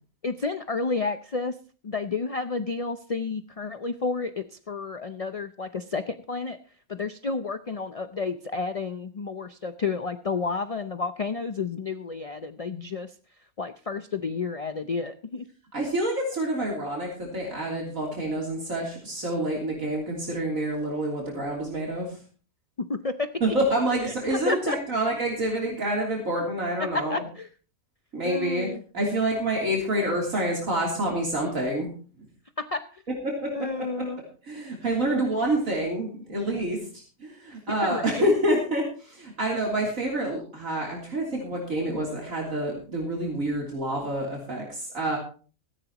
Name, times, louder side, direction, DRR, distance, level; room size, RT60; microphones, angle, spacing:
voice 1, 0.2-1.5 1.8-6.6 6.9-13.1 13.6-15.4 22.8-23.6 24.0-24.8 26.8-27.5 28.2-28.8 32.6-33.0 33.5-34.2 37.8-38.3, left 4 dB, 50° left, 10 dB, 0.4 m, -31 dB
voice 2, 15.7-22.2 23.4-27.2 28.1-28.7 28.9-31.9 33.7-34.1 34.4-36.8 37.2-45.2, right 1 dB, 65° right, -2 dB, 3.7 m, -27 dB
17.0 x 14.0 x 3.0 m, 0.39 s
omnidirectional pair, 1.5 m